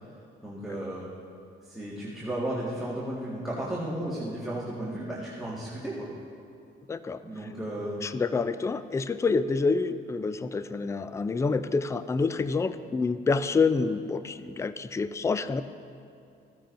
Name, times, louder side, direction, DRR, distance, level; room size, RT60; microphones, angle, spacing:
voice 1, 0.4-1.1 1.7-6.1 7.2-8.0, right 1 dB, ahead, -8 dB, 1.7 m, -34 dB
voice 2, 6.9-7.2 8.0-15.6, left 4 dB, 15° left, 13 dB, 0.3 m, -27 dB
14.5 x 10.0 x 2.6 m, 2.6 s
cardioid pair, 90°, 20 cm